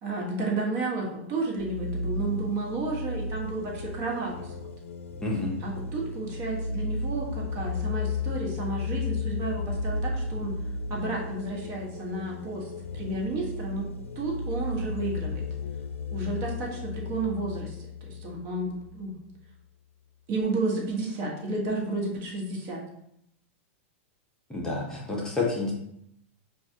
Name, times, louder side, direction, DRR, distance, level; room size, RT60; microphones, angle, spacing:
voice 1, 0.0-4.5 5.6-10.5 10.9-13.9 14.2-15.4 16.1-17.7 18.0-19.2 20.3-22.8, right 3 dB, 45° right, -1 dB, 1.3 m, -32 dB
sound 1, 1.6-19.0, left 3 dB, 85° left, 0.4 m, -34 dB
voice 2, 5.2-5.5 24.5-25.7, left 3 dB, 10° left, -3 dB, 0.7 m, -29 dB
5.7 x 2.4 x 2.8 m, 0.76 s
hypercardioid pair, 130°, 7 cm